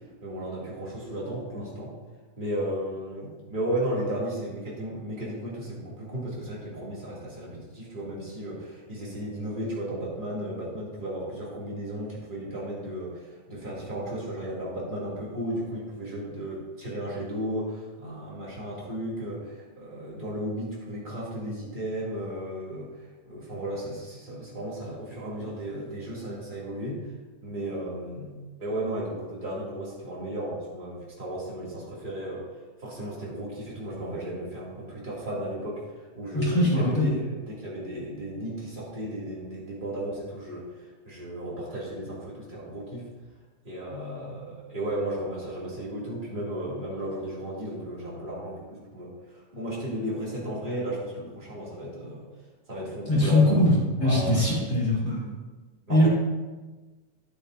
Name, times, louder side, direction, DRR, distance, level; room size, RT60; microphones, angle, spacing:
voice 1, 0.2-1.9 2.4-27.1 27.4-32.4 32.8-43.1 43.6-52.3 52.7-53.7 54.0-54.9 55.9-56.1, right 1 dB, 15° right, -7 dB, 2.2 m, -34 dB
voice 2, 36.3-37.1 53.1-55.3 55.9-56.1, left 1 dB, 35° left, -6 dB, 2.0 m, -22 dB
10.0 x 9.1 x 2.7 m, 1.2 s
omnidirectional pair, 3.6 m